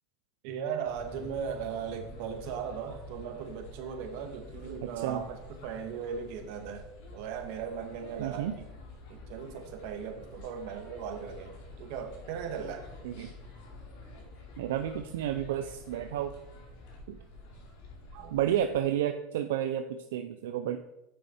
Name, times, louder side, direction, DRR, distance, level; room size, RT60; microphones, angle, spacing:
voice 1, 0.4-6.8 7.1-8.7 9.1-12.8 18.1-18.4, right 7 dB, 65° right, 5 dB, 1.5 m, -38 dB
sound 1, 0.8-18.8, left 2 dB, 70° left, 2.8 m, -49 dB
voice 2, 4.8-5.2 8.2-8.5 13.0-13.3 14.6-16.3 17.1-17.2 18.3-20.8, right 11 dB, 90° right, 7 dB, 0.5 m, -31 dB
8.1 x 6.4 x 4.4 m, 0.90 s
supercardioid pair, 125°, 0 cm